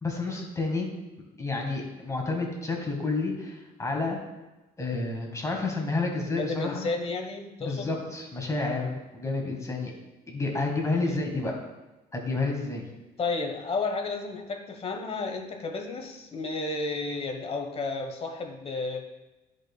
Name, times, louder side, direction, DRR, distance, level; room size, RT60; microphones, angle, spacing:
voice 1, 0.0-0.9 1.4-4.2 4.8-6.9 7.6-9.9 10.3-11.6 12.1-12.8, left 3 dB, 20° left, 0 dB, 1.7 m, -30 dB
voice 2, 6.2-7.9 11.0-11.2 13.2-19.1, left 3 dB, 35° left, 4 dB, 1.2 m, -32 dB
13.0 x 5.1 x 2.3 m, 1.1 s
cardioid pair, 110°, 17 cm